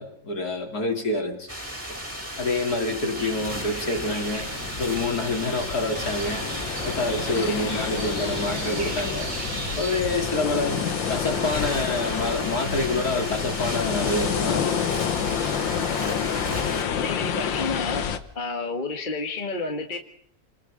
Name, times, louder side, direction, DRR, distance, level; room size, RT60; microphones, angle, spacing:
voice 1, 0.0-1.5 1.9-2.0 2.4-4.5 4.8-6.5 6.8-9.3 9.7-14.7, left 2 dB, 55° left, 2 dB, 3.8 m, -27 dB
sound 1, 1.5-16.8, equal, 5° right, 3.3 m, -35 dB
sound 2, 2.8-18.2, left 8 dB, 85° left, 1.9 m, -29 dB
sound 3, 3.1-10.0, right 2 dB, 50° right, 4.3 m, -37 dB
voice 2, 17.0-18.0 18.4-20.0, left 3 dB, 25° left, 3 dB, 1.7 m, -30 dB
28.5 x 20.5 x 5.1 m, 0.66 s
omnidirectional pair, 2.0 m